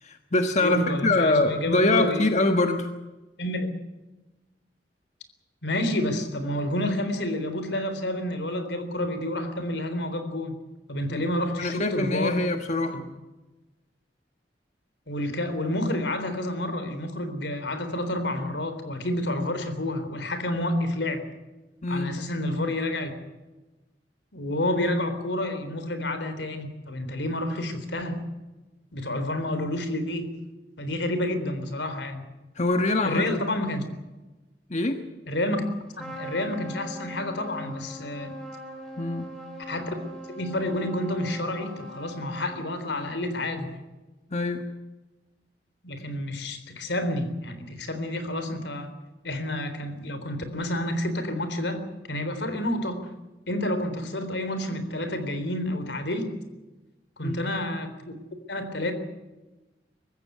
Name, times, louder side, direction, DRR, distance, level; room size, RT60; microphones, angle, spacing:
voice 1, 0.0-2.9 11.1-11.2 11.6-13.0 21.8-22.2 32.6-33.2 34.7-35.0 39.0-39.3 44.3-44.7 57.2-57.5, left 2 dB, 40° left, 6 dB, 1.4 m, -24 dB
voice 2, 0.6-2.2 3.4-3.8 5.6-10.5 10.9-12.5 15.1-21.2 21.9-23.1 24.3-28.2 28.9-30.3 30.8-32.3 33.0-33.8 35.3-35.6 36.0-38.3 39.7-40.0 40.3-43.7 45.8-48.9 49.2-51.8 52.1-53.1 53.5-56.3 57.2-57.9 58.5-58.9, left 1 dB, 80° left, 9 dB, 3.7 m, -29 dB
Trumpet, 36.0-42.9, equal, 5° left, 6.4 m, -41 dB
24.0 x 14.5 x 9.4 m, 1.1 s
head